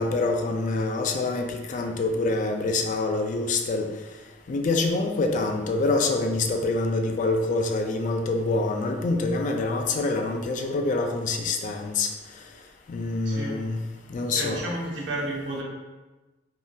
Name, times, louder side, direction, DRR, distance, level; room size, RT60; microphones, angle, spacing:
voice 1, 0.0-3.9 4.5-12.1 12.9-13.8 14.1-14.6, left 3 dB, 45° left, 4 dB, 0.3 m, -26 dB
voice 2, 13.2-13.6 14.3-15.6, right 1 dB, 90° right, -4 dB, 0.9 m, -31 dB
3.6 x 2.6 x 2.3 m, 1.1 s
head